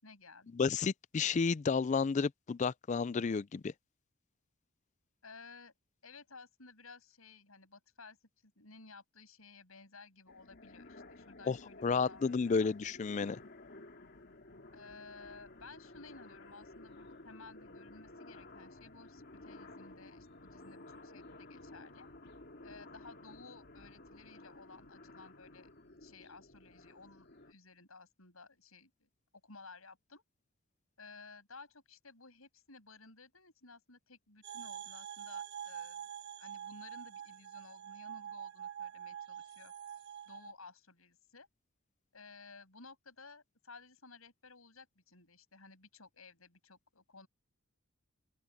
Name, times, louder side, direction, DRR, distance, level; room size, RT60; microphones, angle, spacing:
voice 1, 0.0-0.5 5.2-5.7 6.0-8.2 8.4-12.7 14.7-22.1 22.6-25.7 26.0-29.1 29.4-30.2 31.0-36.0 36.4-39.7 40.3-41.5 42.1-47.3, left 4 dB, 85° left, 6.7 m, -56 dB
voice 2, 0.5-3.7 11.5-11.6 11.8-13.4, left 5 dB, 35° left, 0.3 m, -31 dB
sound 1, 10.3-27.5, left 2 dB, 50° left, 2.6 m, -54 dB
sound 2, 34.4-40.5, right 9 dB, 55° right, 1.5 m, -46 dB
open air
head